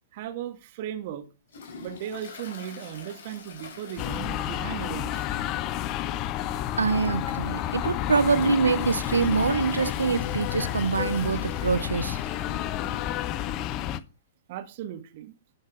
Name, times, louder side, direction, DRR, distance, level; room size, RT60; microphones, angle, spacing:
voice 1, 0.1-1.3 1.8-5.3 12.6-12.7 14.5-15.3, right 10 dB, 50° right, 1.6 m, -37 dB
Toilet flush, 1.5-4.9 5.2-5.3 5.7-5.8 6.7-6.8 7.3-12.3 12.6-12.7 12.8-12.9 14.0-14.1, left 4 dB, 60° left, 4.7 m, -44 dB
sound 1, 4.0-14.0, left 12 dB, 35° left, 0.8 m, -30 dB
voice 2, 6.8-12.2, right 5 dB, 80° right, 0.5 m, -25 dB
13.0 x 6.5 x 4.7 m
figure-of-eight pair, 110°, 0 cm